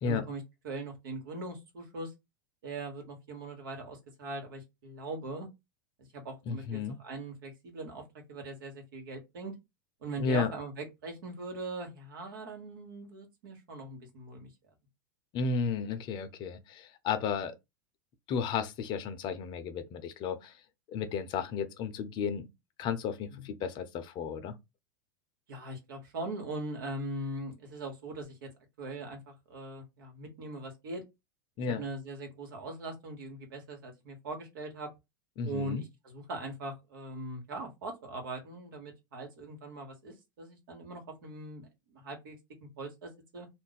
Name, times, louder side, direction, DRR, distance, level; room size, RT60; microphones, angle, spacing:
voice 1, 0.0-2.1 2.6-5.5 6.0-9.5 10.0-14.5 23.3-23.4 25.5-28.5 28.8-31.0 31.7-34.9 35.4-43.5, right 2 dB, 75° right, 1.2 m, -41 dB
voice 2, 6.5-7.0 10.2-10.5 15.3-17.6 18.3-20.6 20.9-22.5 22.8-24.6 31.6-31.8 35.4-35.8, left 5 dB, 40° left, 0.6 m, -33 dB
2.5 x 2.1 x 3.9 m
hypercardioid pair, 105°, 11 cm